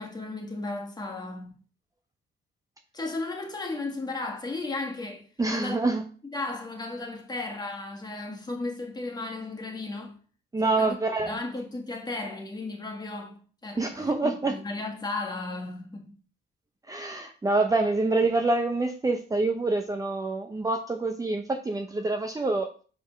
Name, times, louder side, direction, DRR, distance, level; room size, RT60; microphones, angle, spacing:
voice 1, 0.0-1.5 2.9-5.2 5.5-10.1 10.6-11.0 11.3-16.1, left 2 dB, 20° left, 1.7 m, -35 dB
voice 2, 5.4-6.0 10.5-11.3 13.8-14.5 16.9-22.7, right 3 dB, 15° right, 0.7 m, -26 dB
5.0 x 4.5 x 5.1 m
cardioid pair, 90°, 20 cm